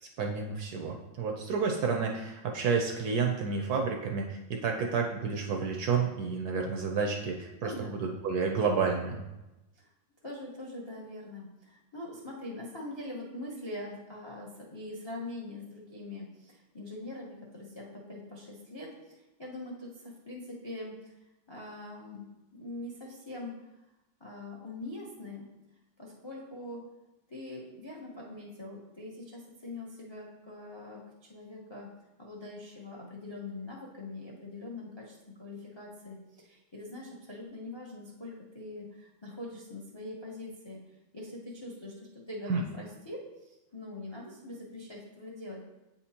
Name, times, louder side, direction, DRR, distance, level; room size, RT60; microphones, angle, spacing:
voice 1, 0.2-9.2 42.5-42.6, right 5 dB, 70° right, 2 dB, 0.9 m, -30 dB
voice 2, 7.6-8.0 9.7-9.9 10.2-21.1 21.5-23.5 24.2-25.5 26.0-26.8 27.3-31.9 32.2-40.8 41.1-41.9 42.3-45.6, left 2 dB, 35° left, -3 dB, 0.4 m, -43 dB
8.6 x 4.3 x 2.8 m, 0.99 s
omnidirectional pair, 2.1 m